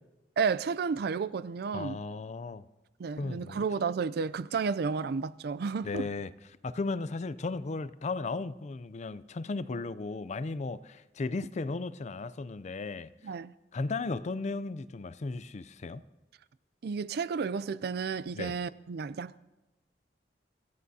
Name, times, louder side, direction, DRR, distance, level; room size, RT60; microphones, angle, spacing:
voice 1, 0.4-2.0 3.0-6.1 13.2-13.5 16.8-19.4, right 5 dB, 60° right, 0.4 m, -32 dB
voice 2, 1.7-2.7 3.2-3.6 5.8-6.3 6.6-13.3 13.7-16.0 18.3-18.6, left 3 dB, 40° left, 0.4 m, -35 dB
27.0 x 14.0 x 2.8 m
head